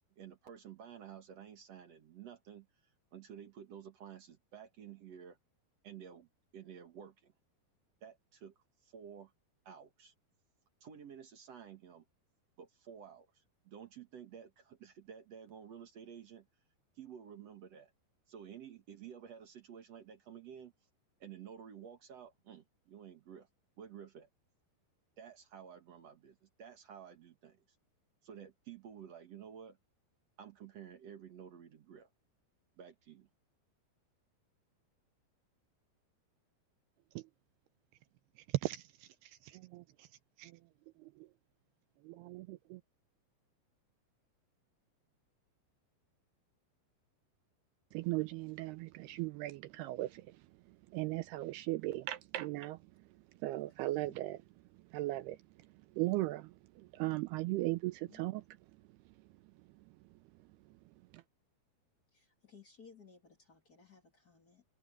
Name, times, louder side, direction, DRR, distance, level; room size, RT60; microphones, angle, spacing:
voice 1, 0.0-2.7 3.1-5.4 5.8-7.3 8.0-8.5 8.8-9.3 9.6-10.1 10.8-12.0 12.6-16.4 16.9-17.9 18.3-20.7 21.2-23.5 23.8-24.3 25.2-27.6 28.2-29.8 30.4-32.1 32.8-33.3, right 8 dB, 60° right, 1.8 m, -52 dB
voice 2, 38.6-40.1 40.4-40.5 41.0-41.1 42.1-42.8 47.9-50.4 50.9-52.8 53.4-54.4 54.9-55.4 56.0-58.4 61.1-61.2, right 18 dB, 85° right, 2.3 m, -38 dB
voice 3, 53.5-54.2 58.0-58.3 62.1-64.6, left 6 dB, 30° left, 1.8 m, -60 dB
omnidirectional pair, 5.1 m